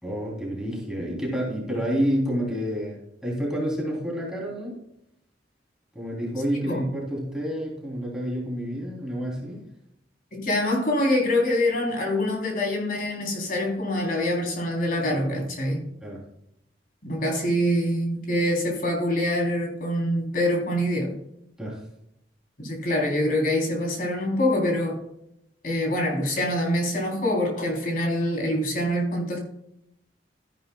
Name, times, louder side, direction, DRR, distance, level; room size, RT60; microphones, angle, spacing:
voice 1, 0.0-4.7 5.9-9.6 16.0-16.2 21.6-21.8, equal, 5° right, -4 dB, 3.2 m, -29 dB
voice 2, 10.3-15.8 17.0-21.2 22.6-25.0 25.6-29.4, left 1 dB, 50° left, 0 dB, 3.5 m, -25 dB
13.5 x 11.0 x 2.3 m, 0.78 s
head